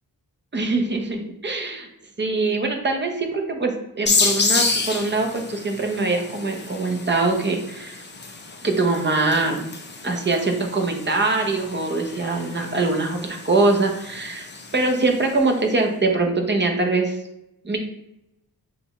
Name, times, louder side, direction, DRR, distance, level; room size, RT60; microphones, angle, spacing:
voice 1, 0.5-1.9 2.2-8.0 8.6-9.6 10.0-14.5 14.7-17.2 17.6-17.8, right 3 dB, 30° right, 3 dB, 0.8 m, -23 dB
sound 1, 4.1-15.4, left 3 dB, 30° left, 0.6 m, -29 dB
6.8 x 2.4 x 3.1 m, 0.84 s
wide cardioid pair, 95°, 38 cm